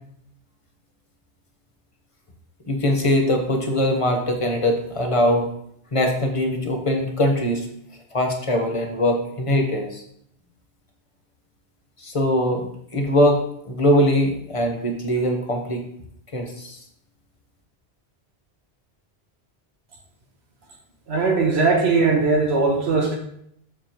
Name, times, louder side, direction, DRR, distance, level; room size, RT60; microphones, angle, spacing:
voice 1, 2.7-5.5 5.9-7.7 8.1-10.0 12.0-12.7 12.9-13.4 13.7-15.8 16.3-16.8, left 1 dB, 30° left, 3 dB, 1.0 m, -21 dB
voice 2, 21.1-23.2, right 4 dB, 75° right, 1 dB, 1.5 m, -19 dB
7.0 x 6.6 x 3.0 m, 0.72 s
omnidirectional pair, 1.1 m